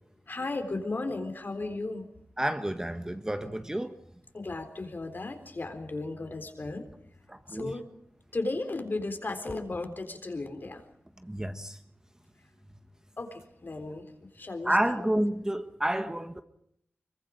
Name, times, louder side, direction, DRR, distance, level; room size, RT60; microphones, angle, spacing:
voice 1, 0.3-2.1 4.3-6.9 7.5-7.8 8.3-10.8 13.2-14.0 14.3-15.1, left 2 dB, 50° left, 3.8 m, -35 dB
voice 2, 2.4-4.0 7.3-7.8 11.2-11.8 14.6-16.4, right 1 dB, 15° right, 1.4 m, -30 dB
25.5 x 23.0 x 5.2 m
wide cardioid pair, 65°, 4 cm